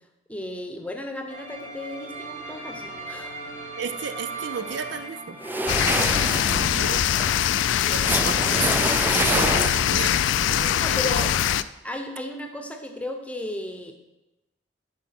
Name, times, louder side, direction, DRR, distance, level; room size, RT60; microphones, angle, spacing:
voice 1, 0.3-3.4 7.7-8.1 10.8-11.3 11.8-13.9, left 1 dB, 5° left, 5 dB, 0.8 m, -34 dB
sound 1, 1.3-6.7, right 2 dB, 35° right, 1.4 m, -38 dB
voice 2, 3.8-5.4 5.7-7.1 7.6-10.2 10.5-11.3, right 6 dB, 75° right, 11 dB, 0.5 m, -34 dB
sound 2, 5.4-10.0, right 2 dB, 10° right, 0.3 m, -27 dB
sound 3, 5.7-11.6, left 10 dB, 85° left, 0.3 m, -22 dB
10.5 x 4.7 x 5.9 m, 1.0 s
head